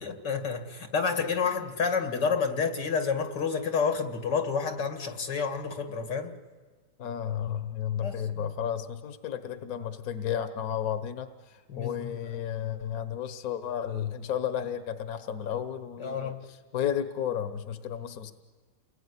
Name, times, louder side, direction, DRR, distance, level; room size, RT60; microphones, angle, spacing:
voice 1, 0.0-6.3 8.0-8.5 11.7-12.1 16.0-16.4, left 5 dB, 90° left, 6 dB, 2.7 m, -29 dB
voice 2, 7.0-18.3, left 9 dB, 60° left, 9 dB, 1.5 m, -33 dB
29.0 x 20.5 x 9.8 m, 1.5 s
omnidirectional pair, 1.8 m